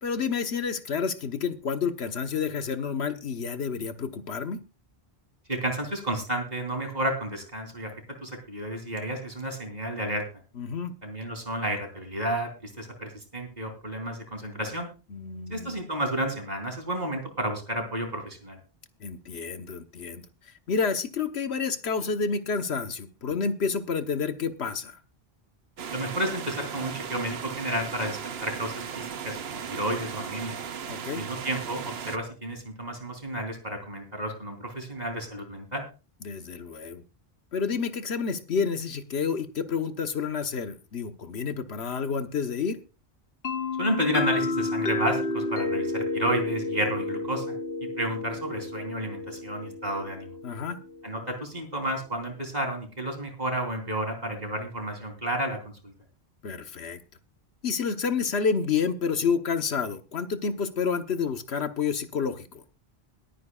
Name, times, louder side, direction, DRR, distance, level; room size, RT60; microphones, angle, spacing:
voice 1, 0.0-4.6 10.6-10.9 15.1-15.8 19.0-20.2 20.7-25.0 30.9-31.2 36.2-37.0 37.5-42.8 50.4-50.8 56.4-57.0 57.6-62.6, left 5 dB, 85° left, 8 dB, 1.4 m, -29 dB
voice 2, 5.5-7.9 8.2-10.2 11.0-14.9 15.5-18.6 25.9-30.6 31.1-35.8 43.8-47.5 48.0-50.3 51.0-55.9, right 1 dB, 40° right, 4 dB, 3.6 m, -31 dB
sound 1, 25.8-32.2, right 7 dB, 75° right, 1.1 m, -36 dB
sound 2, 43.4-51.1, left 3 dB, 70° left, 1.3 m, -31 dB
22.0 x 9.3 x 2.4 m, 0.31 s
omnidirectional pair, 1.1 m